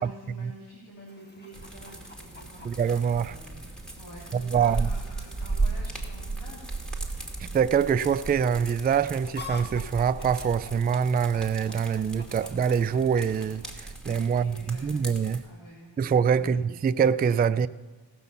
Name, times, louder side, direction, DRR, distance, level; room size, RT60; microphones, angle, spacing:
voice 1, 0.0-2.7 3.2-6.7 14.2-15.0 15.4-15.9 16.3-16.6, right 1 dB, 75° left, 3.1 m, -48 dB
Chicken rooster, 1.1-14.0, left 3 dB, 20° left, 1.6 m, -49 dB
sound 1, 1.5-15.5, right 3 dB, ahead, 2.5 m, -36 dB
voice 2, 2.6-3.3 4.3-4.9 7.4-15.4 16.0-17.7, right 7 dB, 25° right, 0.3 m, -25 dB
18.0 x 6.2 x 6.9 m
cardioid pair, 55°, 46 cm